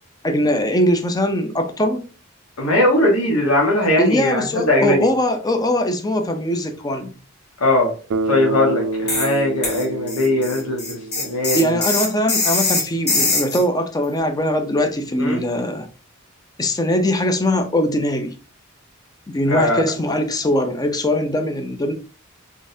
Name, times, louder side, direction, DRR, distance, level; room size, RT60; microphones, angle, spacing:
voice 1, 0.2-2.0 4.0-7.1 11.5-15.9 16.6-18.3 19.3-21.9, left 1 dB, 20° left, 0.5 m, -21 dB
voice 2, 2.6-5.1 7.6-7.9 8.3-10.8 11.2-11.6 15.2-15.4 19.5-19.8, left 1 dB, 80° left, 1.3 m, -19 dB
Bass guitar, 8.1-12.1, right 2 dB, 60° right, 0.4 m, -27 dB
sound 1, 9.1-9.3 9.6-13.6, left 3 dB, 50° left, 1.9 m, -22 dB
3.7 x 3.5 x 2.7 m
head